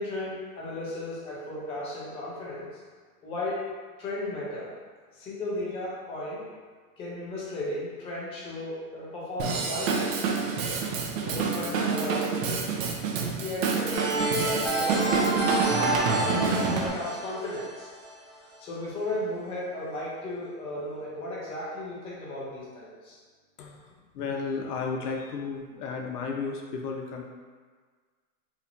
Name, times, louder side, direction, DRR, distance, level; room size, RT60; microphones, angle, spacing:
voice 1, 0.0-2.8 3.2-3.7 4.0-4.7 5.1-6.4 7.0-10.2 11.2-12.6 13.0-14.1 14.4-15.3 15.6-17.9 18.6-23.2, left 1 dB, 15° left, -6 dB, 0.5 m, -35 dB
Drum kit / Drum, 9.4-16.9, right 5 dB, 55° right, 0.7 m, -28 dB
sound 1, 13.9-18.6, right 1 dB, 10° right, 1.0 m, -29 dB
voice 2, 23.6-27.2, left 5 dB, 70° left, 1 dB, 0.8 m, -33 dB
4.2 x 2.9 x 2.7 m, 1.5 s
hypercardioid pair, 135°, 47 cm